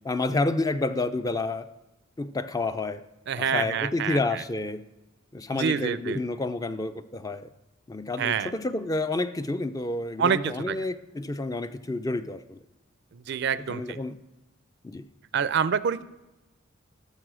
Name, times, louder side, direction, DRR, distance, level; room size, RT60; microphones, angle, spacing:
voice 1, 0.0-1.7 2.2-3.0 3.4-4.8 5.3-7.5 7.9-12.6 13.7-14.2 14.8-15.1, left 2 dB, 20° left, 11 dB, 0.4 m, -29 dB
voice 2, 3.3-4.4 5.6-6.2 8.2-8.5 10.2-10.8 13.1-14.0 15.3-16.0, right 7 dB, 60° right, 16 dB, 0.4 m, -27 dB
14.0 x 6.6 x 6.2 m, 1.0 s
head